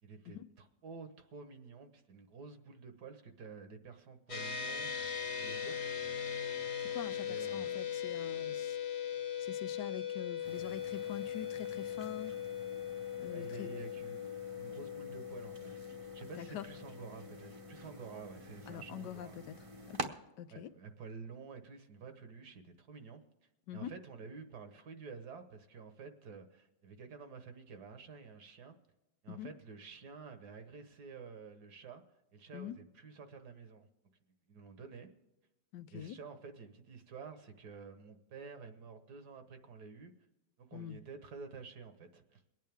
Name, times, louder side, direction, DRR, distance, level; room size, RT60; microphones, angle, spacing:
voice 1, 0.0-4.9 5.4-5.9 7.3-7.8 13.3-15.7 16.1-19.4 20.5-23.2 23.7-28.8 29.2-32.0 32.3-33.9 34.5-35.1 35.9-40.1 40.6-42.4, right 5 dB, 75° right, 1.7 m, -50 dB
sound 1, 4.3-17.9, left 8 dB, 45° left, 1.3 m, -40 dB
voice 2, 6.8-8.8 9.4-12.3 13.2-13.7 16.4-16.7 18.7-19.6 19.9-20.7 23.7-23.9 29.3-29.5 32.5-32.7 35.7-36.2 40.7-41.0, left 10 dB, 85° left, 1.3 m, -45 dB
sound 2, 10.4-20.1, right 1 dB, 30° right, 0.6 m, -49 dB
23.0 x 9.2 x 3.5 m
omnidirectional pair, 1.8 m